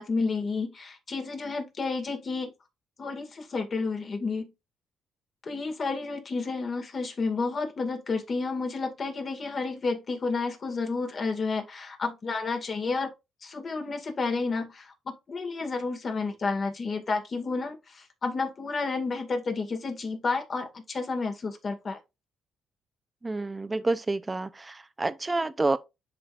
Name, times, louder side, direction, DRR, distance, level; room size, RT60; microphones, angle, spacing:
voice 1, 0.0-2.5 3.0-4.5 5.4-13.1 13.4-22.0, left 4 dB, 40° left, 2.0 m, -31 dB
voice 2, 23.2-25.8, right 2 dB, 20° right, 0.6 m, -28 dB
10.0 x 3.8 x 2.5 m
cardioid pair, 90°, 0 cm